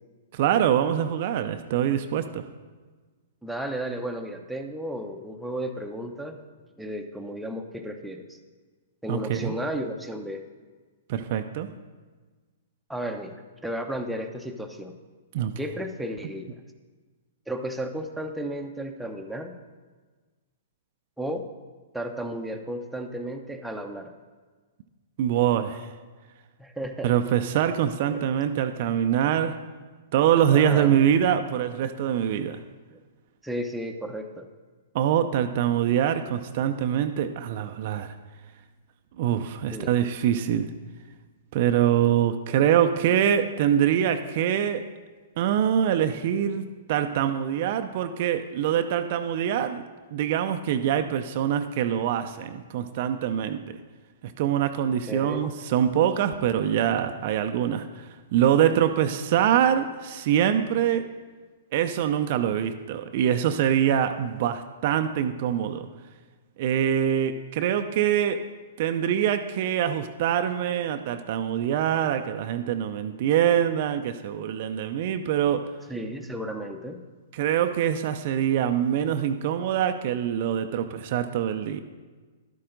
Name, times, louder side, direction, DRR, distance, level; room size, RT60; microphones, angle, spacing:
voice 1, 0.3-2.5 9.1-9.5 11.1-11.7 15.3-15.5 25.2-25.9 27.0-29.6 30.1-32.6 34.9-38.1 39.2-40.7 41.5-44.9 45.4-49.8 50.1-53.8 54.2-57.9 58.3-61.1 61.7-65.9 66.6-68.5 68.8-75.7 77.3-81.8, right 9 dB, 50° right, 8 dB, 0.5 m, -24 dB
voice 2, 3.4-6.4 6.8-8.4 9.0-10.4 12.9-15.0 15.6-16.5 17.5-19.6 21.2-21.4 21.9-24.1 26.6-27.1 28.1-28.2 30.5-31.0 32.9-33.0 33.4-34.5 39.7-39.9 55.1-55.5 75.9-77.0, equal, 5° right, 3 dB, 0.8 m, -33 dB
11.5 x 8.5 x 3.8 m, 1.4 s
hypercardioid pair, 115°, 0 cm